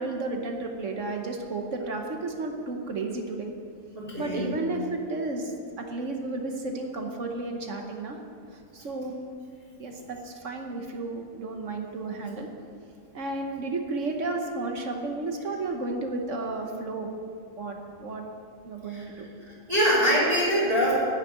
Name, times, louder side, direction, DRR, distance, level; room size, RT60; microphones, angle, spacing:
voice 1, 0.0-3.5 4.2-8.2 8.5-9.2 9.8-12.5 13.1-17.1 17.6-18.3 18.6-19.3, right 2 dB, 55° right, 3 dB, 1.3 m, -32 dB
voice 2, 3.9-4.5 18.9-19.0 19.4-20.9, equal, 25° right, -8 dB, 2.5 m, -24 dB
9.9 x 6.5 x 8.9 m, 2.3 s
omnidirectional pair, 1.7 m